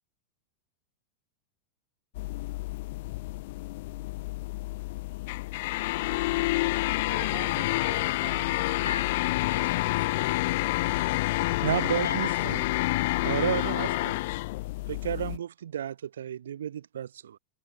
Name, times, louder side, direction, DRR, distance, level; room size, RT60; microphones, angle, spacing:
sound 1, 2.1-15.4, left 20 dB, 50° left, 0.3 m, -29 dB
voice 1, 7.1-8.9 10.9-11.2 11.8-12.3, right 35 dB, 45° right, 2.9 m, -45 dB
voice 2, 8.7-10.5 11.7-12.7 13.5-14.1, left 5 dB, 75° left, 2.3 m, -41 dB
voice 3, 11.6-12.6 13.2-14.2 14.9-17.4, right 9 dB, 65° right, 0.3 m, -32 dB
figure-of-eight pair, 90°, 0 cm